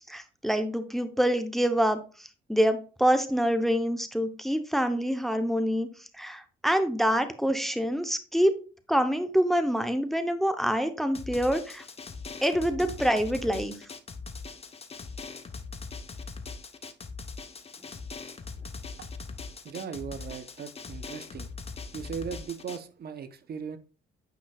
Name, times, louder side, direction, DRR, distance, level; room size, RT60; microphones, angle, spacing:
voice 1, 0.1-8.6 8.9-11.8 12.4-13.7, equal, ahead, 9 dB, 0.8 m, -26 dB
Drum, 11.1-22.8, left 4 dB, 30° left, 0.8 m, -41 dB
voice 2, 19.6-21.5 21.9-23.8, right 7 dB, 55° right, 11 dB, 0.8 m, -38 dB
9.2 x 5.3 x 2.3 m, 0.36 s
cardioid pair, 90°, 20 cm